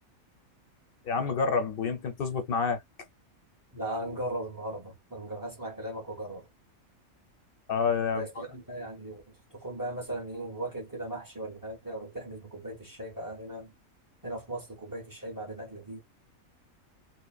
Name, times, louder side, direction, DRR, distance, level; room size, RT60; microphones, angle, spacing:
voice 1, 1.0-2.8 7.7-8.5, left 5 dB, 55° left, 0.6 m, -28 dB
voice 2, 3.7-6.5 8.1-13.7 14.2-16.0, right 1 dB, 25° right, 0.4 m, -38 dB
2.8 x 2.1 x 2.3 m
omnidirectional pair, 1.5 m